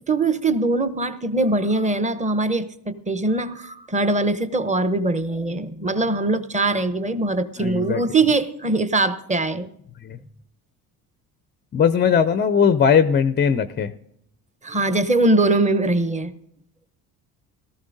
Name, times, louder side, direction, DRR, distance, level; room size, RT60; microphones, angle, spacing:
voice 1, 0.1-9.7 14.6-16.3, right 2 dB, 15° right, 12 dB, 0.8 m, -22 dB
voice 2, 7.6-8.0 10.0-10.2 11.7-13.9, left 7 dB, 25° left, 11 dB, 0.4 m, -19 dB
17.5 x 14.0 x 2.6 m, 0.75 s
hypercardioid pair, 60°, 48 cm